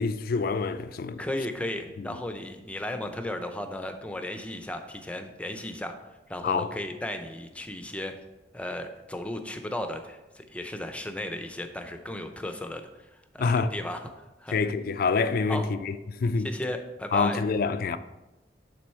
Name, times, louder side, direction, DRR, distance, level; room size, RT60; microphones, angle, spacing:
voice 1, 0.0-1.2 6.4-6.7 13.4-13.7 14.5-16.5 17.1-18.0, left 4 dB, 55° left, 0.4 m, -26 dB
voice 2, 1.2-5.9 6.3-8.1 8.5-13.1 13.3-14.6 15.5-15.7 16.4-17.4, left 1 dB, 5° left, 0.6 m, -35 dB
9.5 x 3.8 x 4.4 m
head